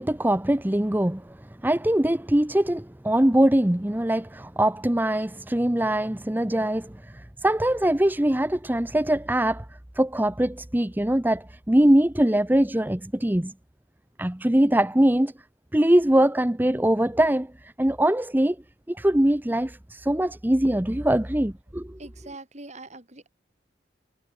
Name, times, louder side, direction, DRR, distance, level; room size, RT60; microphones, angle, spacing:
voice 1, 0.0-1.4 1.6-9.7 9.9-13.5 14.2-15.3 15.7-18.6 18.9-22.0, right 1 dB, 10° right, 0.7 m, -22 dB
voice 2, 22.0-23.3, right 2 dB, 40° right, 4.7 m, -43 dB
head